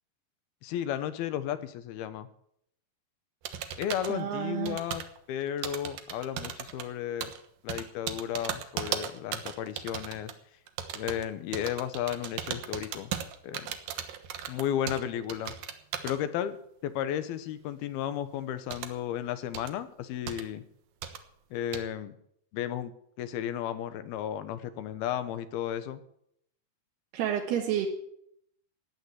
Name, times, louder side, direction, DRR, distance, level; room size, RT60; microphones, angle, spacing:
voice 1, 0.6-2.3 3.8-5.0 5.3-7.3 7.6-10.3 10.9-13.1 13.4-13.8 14.5-15.5 16.0-20.6 21.5-22.2 22.5-26.0, left 10 dB, 75° left, 12 dB, 2.9 m, -34 dB
sound 1, 3.4-4.2 4.7-5.2 5.6-6.8 7.2-7.4 7.7-10.3 10.7-11.2 11.5-15.0 15.3-16.2 18.7-18.9 19.5-19.7 20.3-20.4 21.0-21.2 21.7-21.8, right 9 dB, 70° right, 2.7 m, -36 dB
voice 2, 4.1-4.8 27.1-27.9, right 10 dB, 85° right, 0 dB, 3.5 m, -30 dB
15.5 x 9.8 x 8.0 m, 0.71 s
omnidirectional pair, 4.5 m